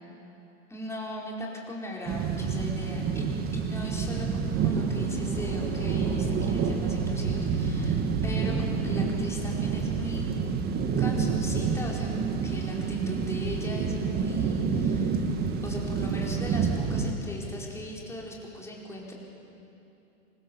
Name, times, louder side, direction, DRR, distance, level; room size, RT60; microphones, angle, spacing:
voice 1, 0.7-10.3 11.0-15.3 15.6-19.1, left 1 dB, 5° left, -3 dB, 4.7 m, -39 dB
sound 1, 2.1-17.1, right 5 dB, 25° right, 1.9 m, -28 dB
26.5 x 24.5 x 7.2 m, 2.9 s
hypercardioid pair, 135°, 40 cm